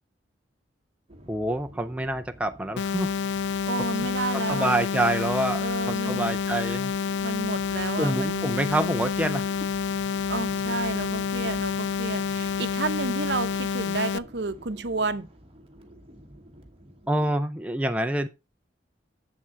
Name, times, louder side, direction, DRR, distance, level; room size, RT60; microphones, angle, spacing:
sound 1, 1.1-17.3, right 1 dB, 30° right, 1.2 m, -48 dB
voice 1, 1.3-3.1 4.5-5.6 5.9-6.9 8.0-9.5 17.1-18.3, right 1 dB, 5° right, 0.4 m, -26 dB
sound 2, 2.8-14.2, left 6 dB, 70° left, 0.4 m, -28 dB
voice 2, 3.7-4.8 5.6-6.4 7.2-8.5 10.3-15.3, right 3 dB, 65° right, 0.8 m, -31 dB
7.4 x 7.1 x 4.5 m
head